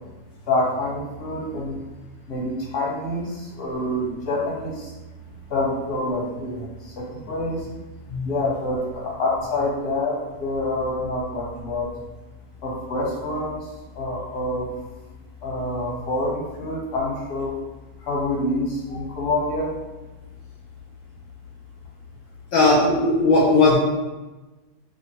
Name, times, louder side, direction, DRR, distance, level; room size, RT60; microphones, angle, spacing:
voice 1, 0.5-1.8 2.3-4.9 5.5-7.6 8.2-10.1 10.4-11.9 12.6-13.6 13.9-14.7 15.4-17.5 18.1-19.7, left 2 dB, 45° left, -4 dB, 1.0 m, -26 dB
voice 2, 22.5-23.8, left 2 dB, 70° left, -4 dB, 1.0 m, -17 dB
2.8 x 2.1 x 4.0 m, 1.1 s
omnidirectional pair, 1.7 m